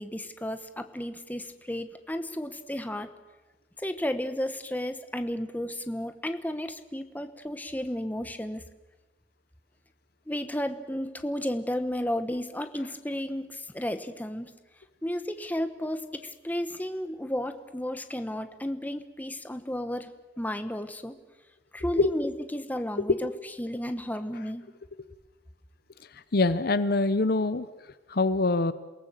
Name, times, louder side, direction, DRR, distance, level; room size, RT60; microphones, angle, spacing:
voice 1, 0.0-3.1 3.8-8.6 10.3-14.5 15.0-21.1 21.7-23.3 23.6-24.7, left 1 dB, 10° left, 9 dB, 1.2 m, -33 dB
voice 2, 26.3-27.7 28.1-28.7, left 3 dB, 55° left, 14 dB, 0.8 m, -24 dB
28.0 x 18.0 x 7.5 m, 1.1 s
head